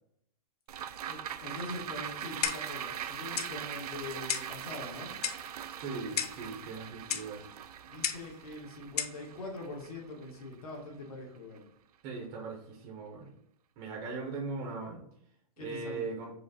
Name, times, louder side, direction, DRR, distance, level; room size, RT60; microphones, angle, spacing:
sound 1, 0.7-11.2 11.6-11.7, right 9 dB, 90° right, 0.4 m, -42 dB
voice 1, 1.1-5.2 7.8-11.7 15.6-16.1, left 2 dB, 70° left, -1 dB, 1.4 m, -43 dB
Clock, 2.4-2.8 3.4-3.5 4.3-4.6 5.2-5.5 6.2-6.4 7.1-7.3 8.0-8.3 9.0-9.2, left 8 dB, 85° left, 0.6 m, -33 dB
voice 2, 5.8-7.4 12.0-13.3 13.8-15.0 15.6-16.3, right 4 dB, 15° right, -2 dB, 0.5 m, -39 dB
4.9 x 2.7 x 4.0 m, 0.71 s
hypercardioid pair, 180°, 19 cm